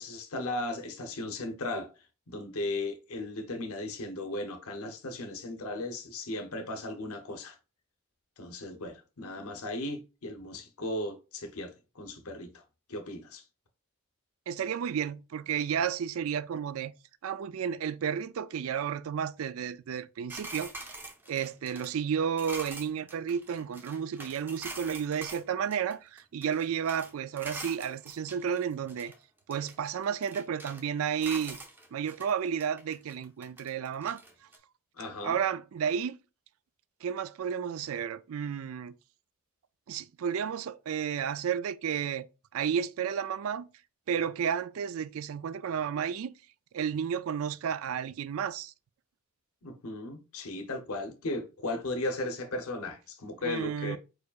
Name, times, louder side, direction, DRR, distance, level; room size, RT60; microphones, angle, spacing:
voice 1, 0.0-1.9 2.3-7.6 8.4-12.6 12.9-13.4 35.0-35.4 49.6-54.0, left 2 dB, 80° left, 0.9 m, -36 dB
voice 2, 14.5-16.9 17.2-20.7 21.3-29.1 29.5-31.6 31.9-34.2 35.2-36.2 37.0-39.0 39.9-42.3 42.5-43.7 44.1-46.3 46.7-48.7 53.4-54.0, right 7 dB, 70° right, 0.3 m, -32 dB
sound 1, 20.3-25.4 25.7-27.1 27.4-29.2 29.5-30.9 31.2-32.3 32.6-34.6, right 2 dB, 10° right, 0.6 m, -44 dB
4.8 x 4.6 x 2.4 m
head